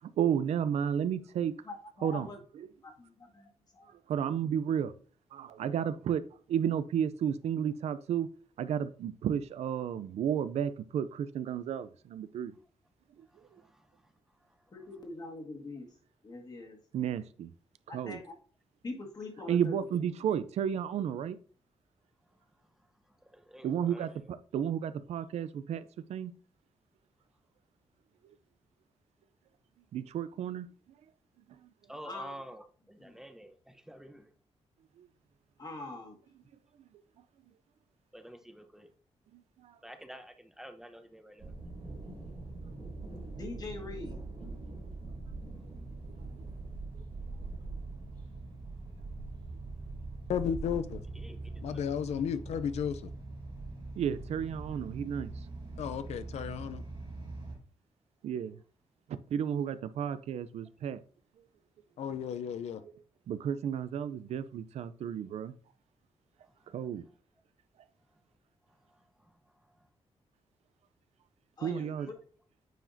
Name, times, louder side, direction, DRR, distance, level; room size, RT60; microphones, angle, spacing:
voice 1, 0.2-1.5 2.0-2.3 2.6-2.7 4.1-4.9 5.3-6.2 6.5-8.3 8.6-12.5 16.9-17.5 17.9-18.2 19.5-21.4 23.6-25.8 26.1-26.3 29.9-30.7 31.6-31.7 35.0-35.1 39.3-39.7 46.1-46.4 54.0-55.3 58.2-58.6 59.1-61.0 63.3-65.5 66.7-67.0 71.6-72.1, right 8 dB, 85° right, 0.5 m, -32 dB
voice 2, 1.6-2.4 2.8-3.9 14.7-15.9 16.2-16.8 17.9-18.3 18.8-19.8 32.0-32.4 33.0-33.2 35.6-36.2 43.3-44.2 71.6-72.1, left 2 dB, 40° left, 1.8 m, -43 dB
voice 3, 13.3-14.1 14.4-14.7 22.6-22.7 23.1-24.3 25.7-25.8 31.9-34.3 38.1-38.9 39.8-41.5 51.1-51.9 62.8-62.9 66.4-66.7 68.8-69.9 72.0-72.2, equal, 5° right, 0.8 m, -51 dB
sound 1, 41.4-57.6, right 3 dB, 55° right, 3.0 m, -42 dB
voice 4, 50.3-51.0 51.6-53.1 55.8-56.8 62.0-62.8, left 8 dB, 85° left, 0.5 m, -33 dB
9.0 x 4.9 x 2.7 m
wide cardioid pair, 135°, 11 cm